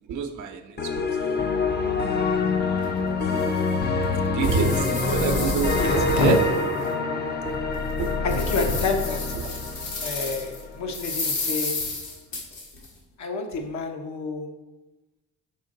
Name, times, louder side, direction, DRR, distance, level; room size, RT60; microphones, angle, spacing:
voice 1, 0.1-1.4 2.1-2.4 4.1-4.9 5.1-6.4 8.0-8.1 9.4-9.5, right 6 dB, 80° right, 0.8 m, -28 dB
sound 1, 0.8-10.8, left 3 dB, 35° left, 0.6 m, -26 dB
sound 2, 2.8-2.9 3.4-3.5 4.0-6.9 7.3-7.4 7.9-10.6 10.9-12.9, left 3 dB, 85° left, 2.0 m, -33 dB
voice 2, 4.9-5.3 5.8-6.4 8.2-9.6 10.0-12.0 13.2-14.7, left 3 dB, 65° left, 1.0 m, -28 dB
5.8 x 4.4 x 3.8 m
cardioid pair, 90°, 30 cm